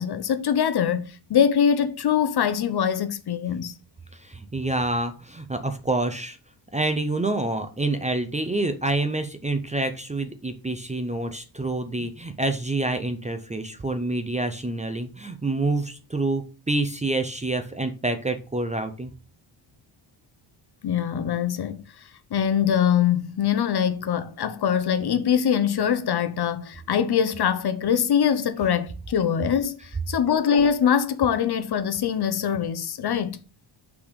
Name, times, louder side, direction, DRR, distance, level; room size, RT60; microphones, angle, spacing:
voice 1, 0.0-3.7 12.0-12.1 20.8-21.8 22.3-33.4, left 8 dB, 55° left, 0.7 m, -23 dB
voice 2, 4.1-6.4 6.7-19.1, right 2 dB, 15° right, 0.5 m, -27 dB
5.7 x 4.2 x 5.1 m
wide cardioid pair, 175°, 47 cm